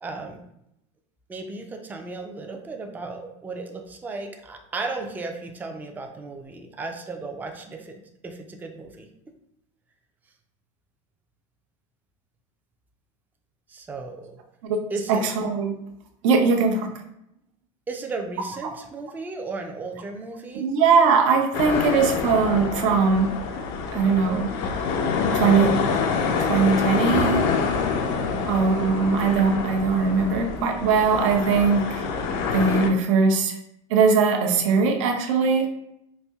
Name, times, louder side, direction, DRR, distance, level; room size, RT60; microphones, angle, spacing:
voice 1, 0.0-0.4 1.3-9.1 13.7-14.4 14.9-15.3 17.9-20.7 28.2-28.4, right 3 dB, 10° right, 3 dB, 0.4 m, -35 dB
voice 2, 15.1-15.7 16.2-16.9 20.5-23.4 23.9-24.5 25.3-25.8 26.4-27.4 28.5-32.0 32.5-33.5 33.9-35.7, right 5 dB, 80° right, 3 dB, 0.6 m, -20 dB
sound 1, 21.5-32.9, left 5 dB, 65° left, 0.5 m, -26 dB
4.2 x 2.6 x 2.3 m, 0.80 s
supercardioid pair, 120°, 16 cm